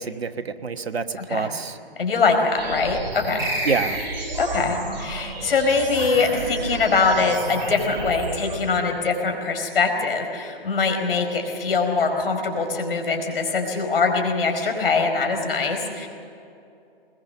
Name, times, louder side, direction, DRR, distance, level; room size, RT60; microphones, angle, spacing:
voice 1, 0.0-1.8 3.6-4.0, right 5 dB, 90° right, 9 dB, 1.4 m, -27 dB
voice 2, 1.1-1.5 2.0-3.5 4.4-16.1, left 4 dB, 65° left, 4 dB, 4.8 m, -23 dB
sound 1, 2.6-8.6, right 2 dB, 50° right, 6.2 m, -32 dB
sound 2, 3.4-4.6, right 1 dB, 10° right, 5.6 m, -28 dB
21.5 x 21.0 x 6.8 m, 2.6 s
hypercardioid pair, 145°, 30 cm